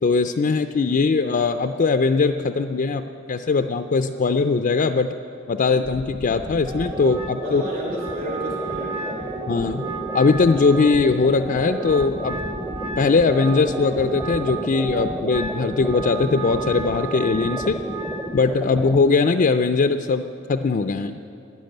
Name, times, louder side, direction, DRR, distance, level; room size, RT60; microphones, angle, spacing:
voice 1, 0.0-5.1 5.5-7.6 9.5-12.4 13.0-17.8 18.3-20.2 20.5-21.2, left 4 dB, 45° left, 7 dB, 0.4 m, -20 dB
sound 1, 5.8-19.0, right 1 dB, 10° right, 0.7 m, -32 dB
Wind instrument woodwind instrument, 6.6-18.3, right 4 dB, 30° right, 1.1 m, -34 dB
voice 2, 7.4-9.3, equal, 50° right, -3 dB, 4.5 m, -33 dB
12.0 x 11.0 x 9.0 m, 2.8 s
head